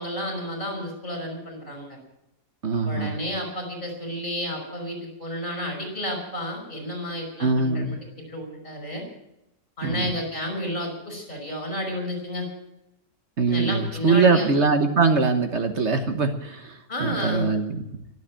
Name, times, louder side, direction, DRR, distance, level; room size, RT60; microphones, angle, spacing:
voice 1, 0.0-2.0 2.8-9.0 9.8-12.5 13.5-14.5 16.9-17.5, left 1 dB, 35° left, 3 dB, 5.5 m, -31 dB
voice 2, 2.6-3.1 7.4-8.0 9.8-10.1 13.4-17.8, right 4 dB, 50° right, 7 dB, 1.4 m, -22 dB
23.5 x 8.0 x 7.5 m, 0.87 s
omnidirectional pair, 1.7 m